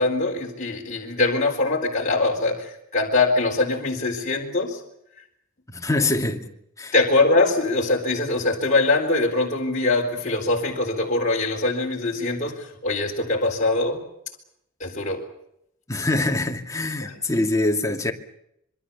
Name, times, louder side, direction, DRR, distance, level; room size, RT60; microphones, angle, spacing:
voice 1, 0.0-4.8 6.9-14.0 14.8-15.2 17.0-17.1, left 2 dB, 40° left, 4.2 m, -23 dB
voice 2, 5.7-6.5 6.8-6.9 15.9-18.1, left 2 dB, 15° left, 2.5 m, -24 dB
26.5 x 23.5 x 7.1 m
head